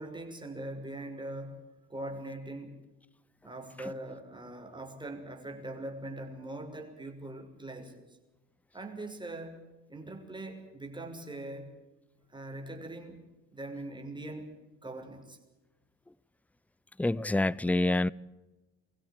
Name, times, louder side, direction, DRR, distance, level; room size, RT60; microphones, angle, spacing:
voice 1, 0.0-2.8 3.4-8.2 8.7-9.6 9.9-11.8 12.3-13.2 13.5-14.5 14.8-15.4, right 1 dB, 15° right, 6.2 m, -42 dB
voice 2, 17.0-18.1, left 2 dB, 5° left, 0.6 m, -26 dB
24.5 x 16.0 x 8.8 m
cardioid pair, 90°, 30 cm